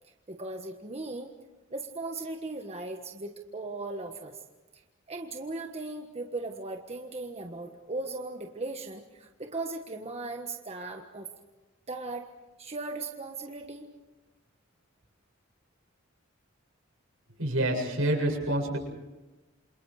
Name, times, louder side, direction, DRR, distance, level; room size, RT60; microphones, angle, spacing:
voice 1, 0.3-1.3 1.7-4.4 5.1-11.3 11.9-12.3 12.6-13.9, right 2 dB, 30° right, 3 dB, 1.5 m, -37 dB
voice 2, 17.4-18.8, right 1 dB, 80° right, 1 dB, 7.6 m, -27 dB
28.5 x 27.5 x 4.9 m, 1.1 s
head